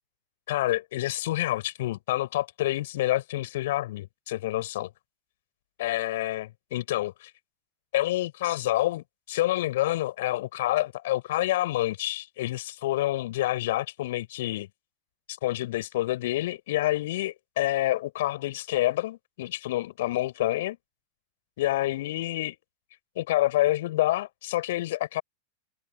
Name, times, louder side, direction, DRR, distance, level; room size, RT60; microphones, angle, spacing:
voice 1, 0.5-4.9 5.8-7.3 7.9-14.7 15.3-20.8 21.6-22.6 23.2-25.2, left 15 dB, 55° left, 4.7 m, -28 dB
figure-of-eight pair, 90°, 0 cm